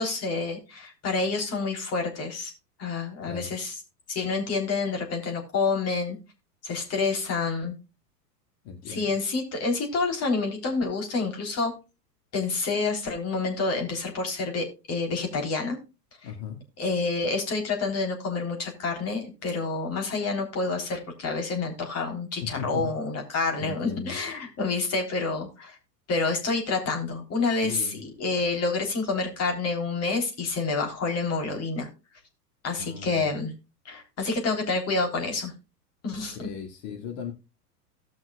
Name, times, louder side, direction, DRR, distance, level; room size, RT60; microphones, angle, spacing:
voice 1, 0.0-2.5 2.8-3.7 4.1-6.2 6.6-7.8 8.9-11.7 12.3-15.8 16.8-25.8 26.1-31.9 32.6-33.5 33.9-35.5 36.0-36.5, left 3 dB, 30° left, 3 dB, 3.6 m, -28 dB
voice 2, 3.2-3.5 8.6-9.2 16.2-16.6 22.4-22.9 23.6-24.2 27.6-28.0 32.8-33.3 36.1-37.3, left 6 dB, 45° left, 3 dB, 2.1 m, -37 dB
18.0 x 6.3 x 2.3 m, 0.29 s
figure-of-eight pair, 90°, 49 cm